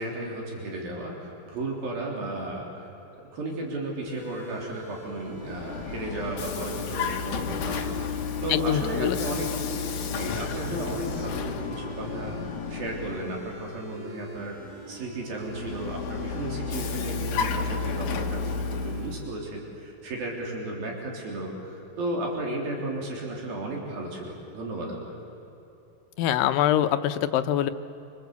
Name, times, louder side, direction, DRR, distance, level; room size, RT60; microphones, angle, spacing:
voice 1, 0.0-2.9 3.3-14.6 14.9-25.3, right 2 dB, 80° right, -1 dB, 5.3 m, -34 dB
sound 1, 4.1-19.0, right 2 dB, 5° right, 6.4 m, -44 dB
Vehicle, 5.2-13.7 15.4-19.3, left 5 dB, 60° left, 2.6 m, -32 dB
voice 2, 8.5-9.2 26.2-27.7, left 11 dB, 80° left, 9 dB, 2.6 m, -24 dB
27.5 x 25.5 x 8.2 m, 2.9 s
omnidirectional pair, 4.1 m